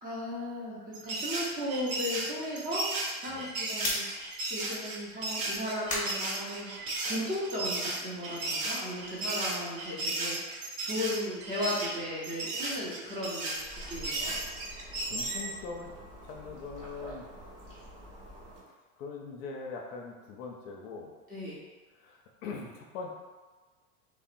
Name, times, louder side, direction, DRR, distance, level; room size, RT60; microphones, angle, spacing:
voice 1, 0.0-2.9 3.1-4.0 4.5-6.7 7.0-10.4 10.8-14.3 21.3-21.6, left 1 dB, 20° right, -7 dB, 0.7 m, -36 dB
sound 1, 0.9-15.5, right 2 dB, 60° right, 0.8 m, -35 dB
voice 2, 3.3-3.6 14.8-15.9 16.2-17.3 19.0-21.2 21.9-23.2, left 4 dB, 60° left, 0 dB, 0.5 m, -42 dB
sound 2, 3.7-7.2 7.5-10.5 10.8-14.9, left 1 dB, 15° left, 0.7 m, -42 dB
sound 3, 13.5-18.6, equal, 35° right, 1.0 m, -48 dB
2.7 x 2.0 x 2.5 m, 1.3 s
hypercardioid pair, 110°, 45 cm